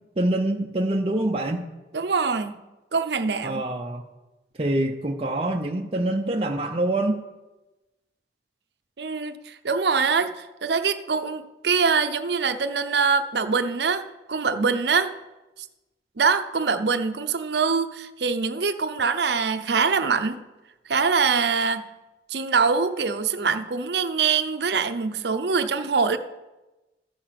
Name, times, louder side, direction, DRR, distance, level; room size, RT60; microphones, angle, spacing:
voice 1, 0.2-1.7 3.4-4.0 4.6-7.2, right 1 dB, 30° right, 1 dB, 0.6 m, -25 dB
voice 2, 1.9-2.6 2.9-3.6 9.0-15.1 16.2-20.4 20.9-21.9 22.3-26.2, right 5 dB, 75° right, 10 dB, 0.7 m, -24 dB
14.0 x 6.7 x 5.8 m, 1.1 s
head